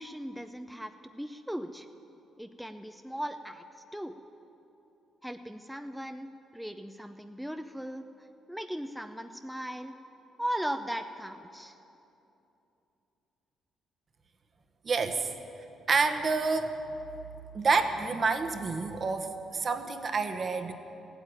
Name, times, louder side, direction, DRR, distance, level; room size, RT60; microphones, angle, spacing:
voice 1, 0.0-1.9 2.4-3.6 3.9-4.2 5.2-8.0 8.5-9.9 10.4-11.8, equal, ahead, 7 dB, 0.5 m, -38 dB
voice 2, 14.8-15.3 15.9-16.8 17.5-20.7, right 4 dB, 45° right, 7 dB, 1.1 m, -28 dB
15.5 x 8.9 x 8.9 m, 3.0 s
cardioid pair, 90°, 0 cm